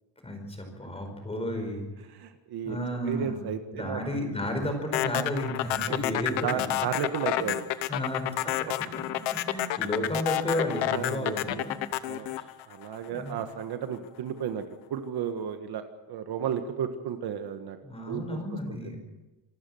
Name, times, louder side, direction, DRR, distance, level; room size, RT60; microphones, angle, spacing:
voice 1, 0.2-1.9 2.6-3.4 3.7-6.7 7.9-8.7 9.4-11.7 12.2-12.4 13.1-13.3 17.8-19.0, left 1 dB, 15° left, 5 dB, 5.0 m, -32 dB
voice 2, 2.1-2.8 3.0-4.0 5.9-6.0 6.4-7.6 10.9-11.7 12.0-12.4 12.7-14.6 14.9-17.8 18.1-18.4 18.7-18.8, right 8 dB, 55° right, 7 dB, 1.6 m, -33 dB
sound 1, 4.9-13.3, left 14 dB, 85° left, 1.1 m, -29 dB
26.5 x 12.5 x 7.9 m, 1.1 s
cardioid pair, 165°, 45 cm